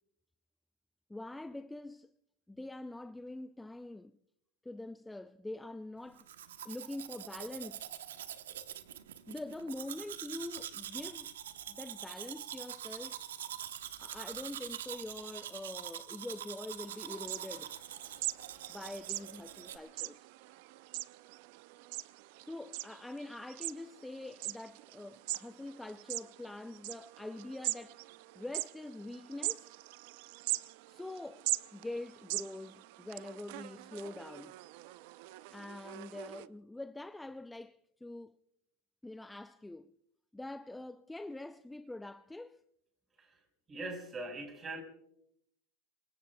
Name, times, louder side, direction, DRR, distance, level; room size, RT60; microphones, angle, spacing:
voice 1, 1.1-2.1 2.5-4.1 4.6-7.9 9.3-11.4 11.7-13.2 14.0-17.7 18.7-20.3 22.4-28.0 28.4-29.7 30.9-34.5 35.5-38.4 39.0-39.9 40.3-42.6, left 2 dB, 5° left, 0.5 m, -45 dB
Domestic sounds home sounds, 6.2-19.8, right 10 dB, 80° right, 1.1 m, -45 dB
sound 1, 16.9-36.5, right 21 dB, 60° right, 0.5 m, -42 dB
voice 2, 43.7-44.8, right 2 dB, 25° right, 5.1 m, -41 dB
26.0 x 22.5 x 2.3 m
hypercardioid pair, 100°, 0 cm